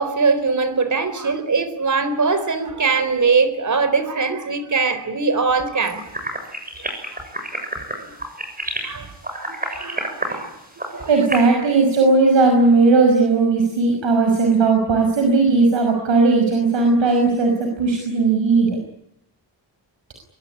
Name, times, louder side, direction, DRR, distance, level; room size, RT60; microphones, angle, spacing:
voice 1, 0.0-6.0 8.8-9.1 9.3-10.5 10.9-11.1, right 4 dB, 40° right, 13 dB, 4.1 m, -21 dB
sound 1, 5.8-11.4, right 1 dB, 20° right, 7.4 m, -29 dB
voice 2, 11.1-18.8, right 3 dB, 80° right, 3 dB, 6.0 m, -17 dB
24.5 x 23.0 x 9.9 m, 0.80 s
wide cardioid pair, 140°, 44 cm